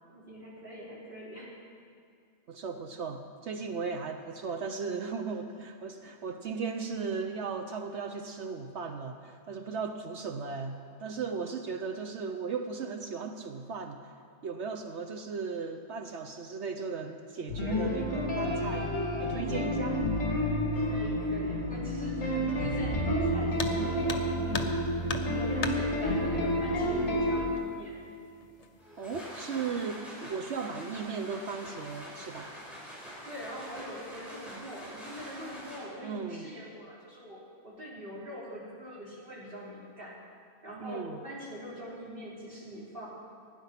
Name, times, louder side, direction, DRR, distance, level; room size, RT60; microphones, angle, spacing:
voice 1, 0.1-1.6 20.8-24.2 25.3-28.0 33.2-40.2 40.6-43.1, equal, 40° right, -6 dB, 3.7 m, -43 dB
voice 2, 2.5-14.0 14.4-18.9 19.2-20.0 24.4-24.9 29.0-32.5 36.0-36.5 40.8-41.2, right 5 dB, 60° right, 5 dB, 1.0 m, -36 dB
sound 1, 17.5-27.4, equal, 55° left, 2.9 m, -30 dB
sound 2, 23.5-23.8 24.1-24.8 25.1-25.8 27.0-27.1 27.6-27.7 28.4-28.8 29.1-29.5, left 3 dB, 35° left, 0.8 m, -35 dB
sound 3, 28.8-36.1, equal, ahead, 4.1 m, -45 dB
16.5 x 10.0 x 5.8 m, 2.3 s
omnidirectional pair, 1.5 m